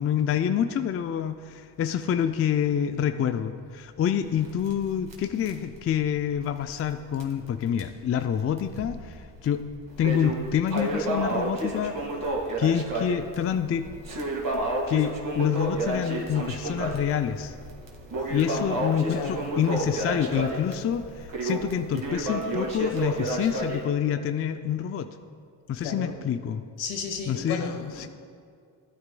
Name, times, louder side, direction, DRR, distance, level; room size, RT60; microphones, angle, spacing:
voice 1, 0.0-9.6 10.0-12.1 12.6-13.9 14.9-17.5 18.3-25.1 25.7-26.6 27.3-28.1, left 9 dB, 30° left, 9 dB, 0.4 m, -27 dB
Crackle, 4.3-7.0 7.2-7.3 7.8-7.9 8.6-9.2 9.6-23.8, right 1 dB, 45° right, 1.9 m, -31 dB
voice 2, 19.0-19.5 25.8-26.1 26.8-28.1, left 5 dB, 70° left, 5 dB, 1.3 m, -34 dB
14.0 x 9.4 x 2.3 m, 2.2 s
supercardioid pair, 70°, 46 cm